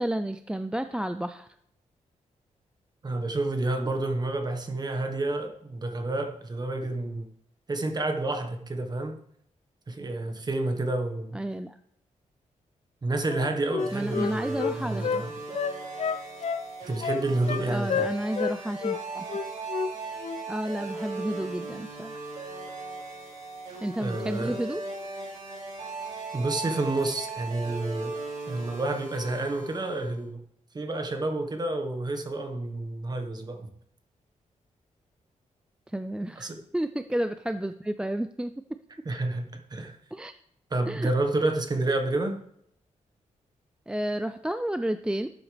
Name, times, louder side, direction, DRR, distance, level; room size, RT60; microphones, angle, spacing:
voice 1, 0.0-1.5 11.3-11.8 13.9-15.2 17.7-19.3 20.5-22.2 23.8-25.2 35.9-38.6 40.1-40.3 40.9-41.1 43.9-45.3, right 1 dB, 5° right, 10 dB, 0.4 m, -31 dB
voice 2, 3.0-7.3 7.7-9.2 9.9-11.4 13.0-15.3 16.9-18.1 24.0-24.6 26.3-28.1 28.5-30.4 30.7-33.7 36.4-36.6 39.0-39.9 40.7-42.4, right 2 dB, 30° right, 6 dB, 1.3 m, -29 dB
Wind instrument woodwind instrument, 13.3-15.2 15.5-16.7 17.0-17.6 17.9-18.6 18.8-19.0 19.3-19.9 20.2-20.4, left 6 dB, 55° left, 0.6 m, -29 dB
sound 1, 13.8-30.2, right 3 dB, 70° right, 4.4 m, -38 dB
12.0 x 8.2 x 3.4 m, 0.71 s
wide cardioid pair, 120°, 13 cm